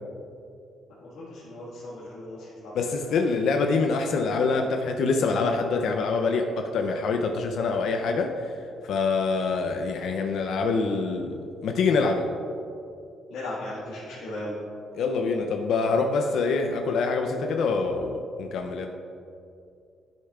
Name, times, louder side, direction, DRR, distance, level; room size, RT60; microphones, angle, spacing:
voice 1, 1.0-2.7 13.3-14.6, left 1 dB, 85° left, -10 dB, 1.6 m, -37 dB
voice 2, 2.7-8.3 8.8-12.3 14.9-18.9, left 4 dB, 70° left, 4 dB, 0.5 m, -25 dB
11.5 x 6.5 x 2.4 m, 2.5 s
cardioid pair, 130°, 0 cm